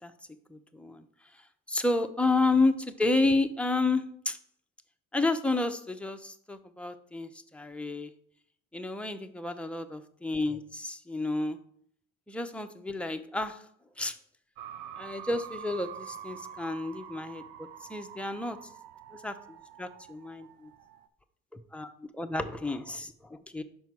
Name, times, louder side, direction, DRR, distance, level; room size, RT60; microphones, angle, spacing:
voice 1, 0.5-1.1 1.7-4.4 5.1-8.1 8.7-11.6 12.3-13.7 14.0-14.2 15.0-18.6 19.1-20.7 21.5-23.6, left 2 dB, 5° left, 6 dB, 0.6 m, -31 dB
sound 1, 14.6-21.1, right 9 dB, 80° right, 0.6 m, -46 dB
5.4 x 4.5 x 6.0 m, 0.63 s
supercardioid pair, 75°, 40 cm